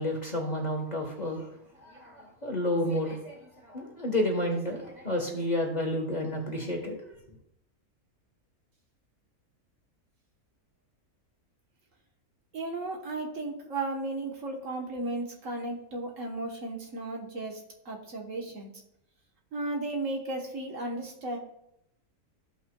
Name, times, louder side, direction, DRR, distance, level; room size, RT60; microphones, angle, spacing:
voice 1, 0.0-1.5 1.8-7.0, left 1 dB, 30° left, 1 dB, 1.3 m, -31 dB
voice 2, 12.5-18.7 19.5-21.4, right 2 dB, 60° right, 0 dB, 1.5 m, -35 dB
14.5 x 5.6 x 2.3 m, 0.77 s
omnidirectional pair, 1.6 m